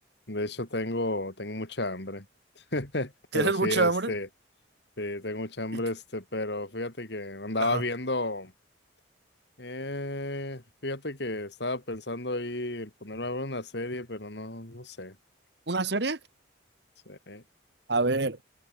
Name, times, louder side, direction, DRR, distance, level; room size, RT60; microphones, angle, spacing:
voice 1, 0.3-2.2 2.7-4.3 5.0-8.5 9.6-15.1 17.1-17.4, left 2 dB, 60° left, 3.4 m, -33 dB
voice 2, 3.3-4.1 7.6-7.8 15.7-16.2 17.9-18.4, right 3 dB, 60° right, 1.4 m, -26 dB
head